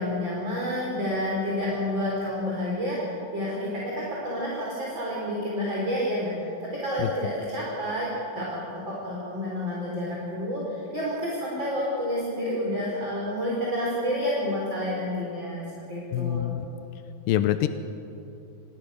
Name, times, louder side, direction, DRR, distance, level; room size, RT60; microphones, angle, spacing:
voice 1, 0.0-8.1 8.3-15.6 15.9-16.5, left 1 dB, 35° right, -5 dB, 4.8 m, -29 dB
voice 2, 16.1-16.7 17.3-17.7, left 12 dB, 90° left, 10 dB, 2.5 m, -25 dB
29.0 x 21.0 x 6.5 m, 2.8 s
omnidirectional pair, 4.0 m